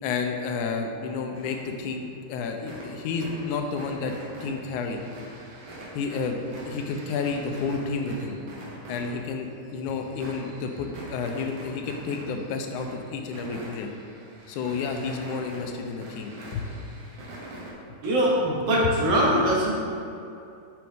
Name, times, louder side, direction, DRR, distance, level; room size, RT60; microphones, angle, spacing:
voice 1, 0.0-4.1 4.4-5.0 5.9-6.4 6.7-8.4 8.9-13.9 14.5-16.7, left 5 dB, 90° left, 4 dB, 2.1 m, -31 dB
sound 1, 1.3-2.0 2.3-17.7, right 1 dB, 80° right, 2.7 m, -43 dB
voice 2, 18.0-19.7, equal, 60° right, -4 dB, 2.0 m, -22 dB
7.8 x 6.1 x 3.5 m, 2.6 s
omnidirectional pair, 3.5 m